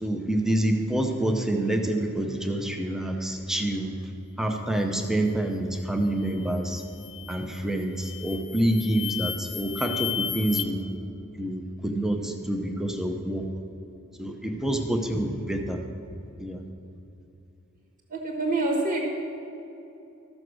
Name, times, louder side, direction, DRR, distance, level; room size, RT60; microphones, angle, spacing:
voice 1, 0.0-3.9 4.4-6.8 7.3-10.8 11.4-13.4 14.2-15.8 16.4-16.6, right 1 dB, ahead, 3 dB, 0.8 m, -27 dB
sound 1, 6.2-6.5 7.0-7.5 8.0-10.6, left 9 dB, 30° left, 0.3 m, -34 dB
voice 2, 18.1-19.0, right 2 dB, 40° right, -1 dB, 1.4 m, -26 dB
14.0 x 6.5 x 6.2 m, 2.9 s
head